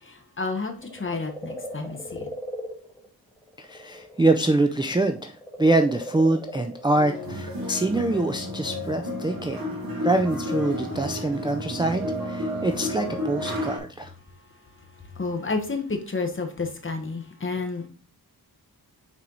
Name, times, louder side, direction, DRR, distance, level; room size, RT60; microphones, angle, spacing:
voice 1, 0.0-2.3 15.1-17.9, left 3 dB, 30° left, 1.1 m, -30 dB
sound 1, 0.8-4.4 4.6-7.3 8.3-8.4, equal, 5° left, 2.2 m, -38 dB
voice 2, 3.6-9.7 10.0-14.1, right 2 dB, 10° right, 0.4 m, -24 dB
sound 2, 6.9-13.8, left 1 dB, 60° right, 2.1 m, -31 dB
6.1 x 4.5 x 3.9 m
wide cardioid pair, 150°, 38 cm